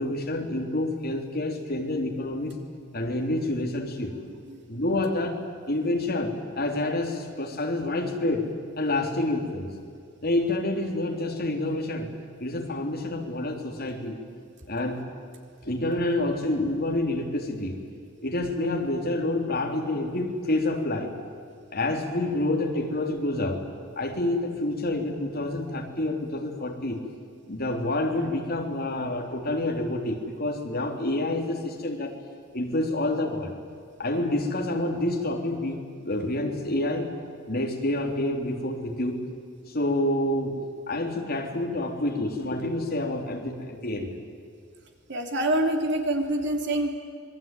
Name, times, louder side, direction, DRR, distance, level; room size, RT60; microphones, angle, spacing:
voice 1, 0.0-2.6 2.9-4.2 4.7-5.4 5.7-9.7 10.2-12.1 12.4-14.2 14.7-15.1 15.6-17.8 18.2-21.1 21.7-23.6 24.0-27.1 27.4-32.1 32.5-33.5 34.0-37.1 37.5-39.2 39.7-44.1, left 1 dB, 50° left, 1 dB, 3.6 m, -28 dB
voice 2, 45.1-46.9, right 1 dB, 60° right, 3 dB, 3.2 m, -26 dB
26.5 x 21.0 x 9.2 m, 2.2 s
head